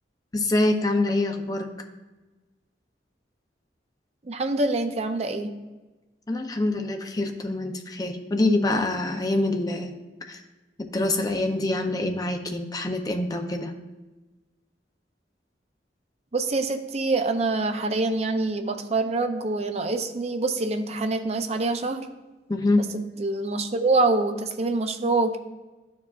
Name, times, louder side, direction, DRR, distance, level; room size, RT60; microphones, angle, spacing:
voice 1, 0.3-1.7 6.3-9.9 10.3-10.4 10.9-13.7 22.5-22.8, left 2 dB, 20° left, 4 dB, 0.5 m, -25 dB
voice 2, 4.2-5.5 16.3-22.1 22.8-22.9 23.2-25.4, right 3 dB, 35° right, 7 dB, 0.5 m, -25 dB
12.0 x 4.6 x 2.4 m, 1.2 s
head